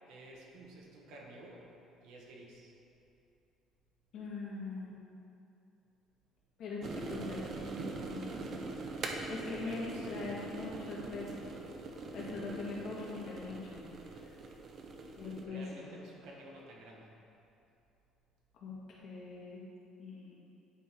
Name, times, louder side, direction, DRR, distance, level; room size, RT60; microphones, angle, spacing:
voice 1, 0.1-1.6 2.0-2.7 9.5-10.5 15.5-17.1, right 1 dB, 80° right, -2 dB, 1.2 m, -52 dB
voice 2, 4.1-5.0 6.6-8.5 8.8-9.0 9.3-11.5 12.1-13.8 14.2-14.4 15.2-15.9 18.5-19.6 20.0-20.4, left 3 dB, 45° left, -6 dB, 1.7 m, -42 dB
sound 1, 6.8-15.5, right 3 dB, 35° right, 0.5 m, -43 dB
10.0 x 3.7 x 4.5 m, 2.7 s
cardioid pair, 180°, 0 cm